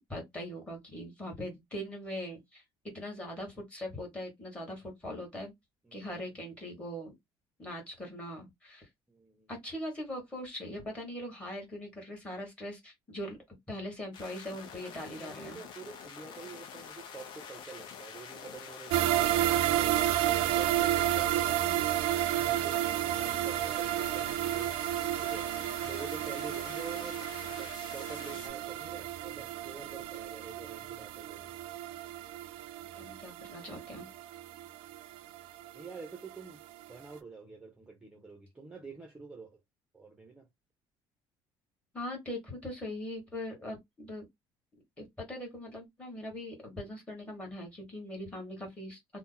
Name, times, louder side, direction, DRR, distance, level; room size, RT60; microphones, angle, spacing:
voice 1, 0.1-2.6 2.9-5.5 5.9-7.1 7.6-8.9 9.5-15.6 32.9-34.1 41.9-44.2 45.0-49.0, left 1 dB, 10° left, 1.3 m, -41 dB
voice 2, 5.8-6.2 9.1-9.5 15.1-21.9 22.3-22.8 23.1-24.8 25.2-25.5 25.8-27.2 27.5-31.5 35.7-36.6 36.9-39.6 39.9-40.5, right 4 dB, 10° right, 0.6 m, -47 dB
sound 1, 14.1-28.5, left 7 dB, 55° left, 0.6 m, -47 dB
sound 2, 18.9-36.0 36.3-36.4 36.8-36.9, right 13 dB, 75° right, 0.3 m, -31 dB
2.8 x 2.1 x 3.7 m
cardioid pair, 180°, 9 cm